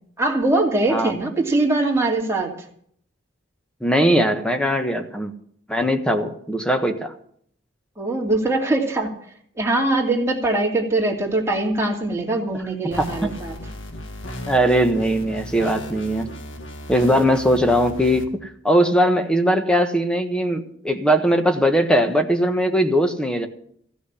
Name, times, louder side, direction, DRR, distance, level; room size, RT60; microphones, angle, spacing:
voice 1, 0.2-2.6 8.0-9.1 9.6-13.6, right 2 dB, 15° right, 2.6 m, -22 dB
voice 2, 3.8-5.3 5.7-7.1 13.0-13.3 14.5-16.3 16.9-23.5, equal, 5° left, 1.3 m, -20 dB
sound 1, 12.9-18.2, left 1 dB, 90° left, 1.8 m, -35 dB
15.5 x 6.3 x 10.0 m
head